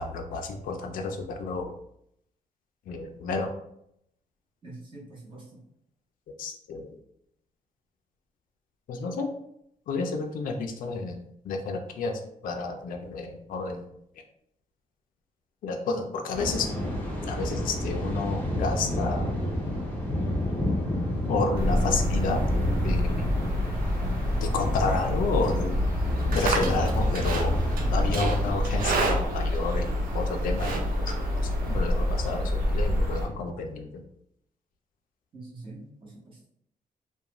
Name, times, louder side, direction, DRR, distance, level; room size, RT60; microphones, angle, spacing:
voice 1, 0.0-1.7 2.9-3.5 6.4-6.9 8.9-9.3 9.9-11.2 11.4-13.8 15.6-16.7 17.3-19.3 21.3-22.4 22.8-23.3 24.4-25.8 26.3-31.1 31.6-33.9, left 3 dB, 70° left, 3 dB, 0.4 m, -30 dB
voice 2, 4.6-5.6 35.3-36.5, right 2 dB, 35° right, -5 dB, 0.9 m, -45 dB
Thunder, 16.3-28.5, equal, 10° left, 0.5 m, -30 dB
sound 1, 21.5-33.3, left 1 dB, 90° right, 0.9 m, -28 dB
Livestock farm animals working animals, 26.0-31.7, right 4 dB, 70° right, 0.4 m, -32 dB
2.4 x 2.2 x 2.9 m, 0.74 s
wide cardioid pair, 175°, 15 cm